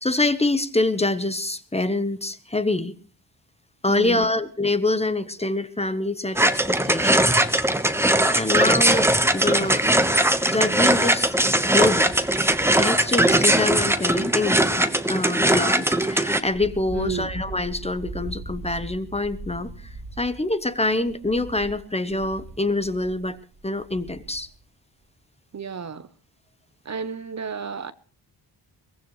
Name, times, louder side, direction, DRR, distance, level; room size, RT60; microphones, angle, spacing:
voice 1, 0.0-2.9 3.8-7.5 8.3-9.8 10.5-11.3 11.6-12.1 12.7-19.7 20.2-23.4 23.6-24.5, left 2 dB, 15° left, 1.0 m, -25 dB
voice 2, 3.9-4.3 16.9-17.3 25.5-26.1 26.8-27.9, right 6 dB, 40° right, 0.8 m, -31 dB
sound 1, 6.4-16.4, right 1 dB, 5° right, 1.1 m, -20 dB
Wind, 16.4-24.6, right 3 dB, 75° right, 3.8 m, -39 dB
22.5 x 19.0 x 3.1 m
wide cardioid pair, 140°, 42 cm